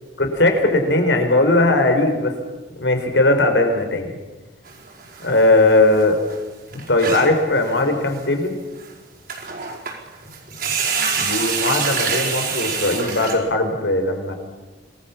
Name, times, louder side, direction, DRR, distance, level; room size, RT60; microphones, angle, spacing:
voice 1, 0.2-2.4 2.8-4.1 5.2-6.1 6.9-8.6 11.2-14.3, left 2 dB, 70° left, 5 dB, 4.7 m, -18 dB
sound 1, 4.6-5.4 5.7-5.8 6.0-6.1 6.3-6.4 6.7-7.4 8.0-8.2 8.8-8.9 9.3-9.9 10.2-13.3, right 5 dB, 55° right, 5.0 m, -25 dB
26.5 x 19.5 x 7.2 m, 1.2 s
head